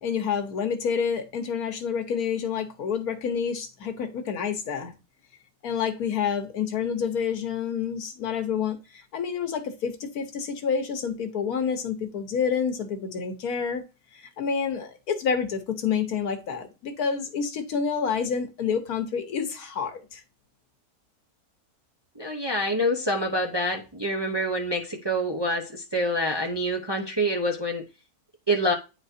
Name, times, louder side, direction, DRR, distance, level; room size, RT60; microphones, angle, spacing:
voice 1, 0.0-4.9 5.6-13.8 14.1-20.2, left 6 dB, 75° left, 1.5 m, -28 dB
voice 2, 22.2-27.8 28.5-28.7, equal, 25° right, 0.7 m, -26 dB
9.5 x 4.2 x 2.7 m
omnidirectional pair, 1.6 m